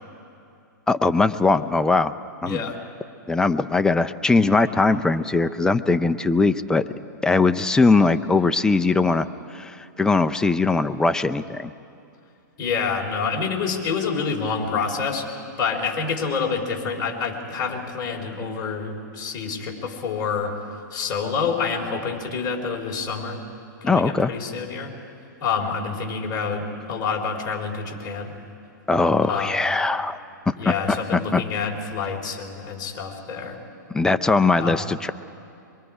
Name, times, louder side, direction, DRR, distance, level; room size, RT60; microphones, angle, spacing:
voice 1, 0.9-2.1 2.4-2.6 3.3-6.8 7.2-11.7 23.8-24.3 28.9-30.2 30.5-31.4 33.9-35.1, left 3 dB, 5° left, 10 dB, 0.5 m, -20 dB
voice 2, 2.4-2.8 12.6-15.3 15.6-20.6 20.9-23.4 23.8-24.9 25.4-28.3 29.3-29.6 30.6-33.6 34.6-34.8, left 5 dB, 35° left, 0 dB, 3.6 m, -27 dB
23.5 x 23.0 x 4.9 m, 2.6 s
hypercardioid pair, 130°, 11 cm